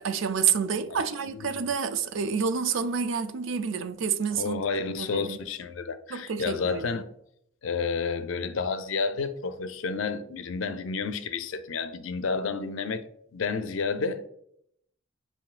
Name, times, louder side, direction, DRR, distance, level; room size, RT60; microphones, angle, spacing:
voice 1, 0.0-4.6 4.9-5.4 6.1-6.8, right 6 dB, 80° right, 0.4 m, -28 dB
voice 2, 0.9-1.7 4.3-7.0 7.6-13.0 13.3-14.3, left 4 dB, 85° left, 0.5 m, -31 dB
7.4 x 2.7 x 2.4 m
head